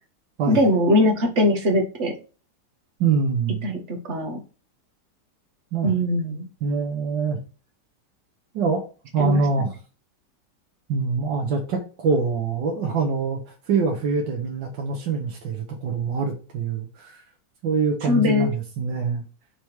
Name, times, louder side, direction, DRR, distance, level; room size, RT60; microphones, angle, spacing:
voice 1, 0.5-2.1 3.6-4.4 5.8-6.5 9.2-9.4 18.0-18.5, left 1 dB, 45° right, 3 dB, 1.4 m, -21 dB
voice 2, 3.0-3.7 5.7-5.9 6.6-7.4 8.5-8.8 9.1-9.7 10.9-13.4 13.7-17.2 17.6-19.2, right 4 dB, 85° right, 0 dB, 1.7 m, -24 dB
5.9 x 3.4 x 4.6 m, 0.35 s
omnidirectional pair, 1.9 m